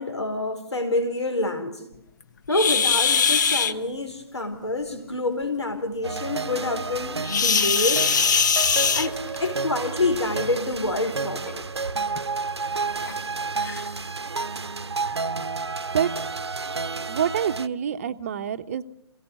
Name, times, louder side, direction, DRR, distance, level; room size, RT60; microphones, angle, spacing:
voice 1, 0.0-1.9 2.5-8.1 8.9-11.7, left 2 dB, 75° left, 6 dB, 4.5 m, -27 dB
sound 1, 2.5-3.7 7.2-9.5 10.7-10.9 11.5-11.6 12.1-12.2 13.0-13.1 13.6-13.8, left 6 dB, 40° left, 1.0 m, -21 dB
sound 2, 6.0-17.7, right 4 dB, 70° right, 1.0 m, -31 dB
voice 2, 17.1-18.8, right 8 dB, 30° right, 11 dB, 1.0 m, -26 dB
28.0 x 17.0 x 6.5 m, 0.77 s
figure-of-eight pair, 145°, 15 cm